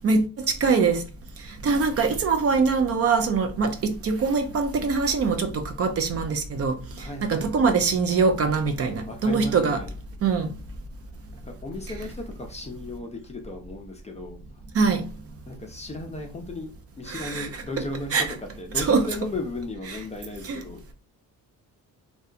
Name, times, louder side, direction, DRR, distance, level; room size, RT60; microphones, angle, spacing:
voice 1, 0.0-1.0 1.6-9.8 10.2-10.5 14.7-15.0 17.1-17.5 18.1-18.2 18.8-19.0 19.9-20.0 20.4-20.6, right 4 dB, 45° right, 0.4 m, -23 dB
voice 2, 7.0-7.5 9.1-9.9 11.3-14.4 15.5-16.7 17.0-18.2 18.6-20.9, left 2 dB, 20° left, 0.4 m, -35 dB
2.7 x 2.2 x 2.4 m
cardioid pair, 140°, 35 cm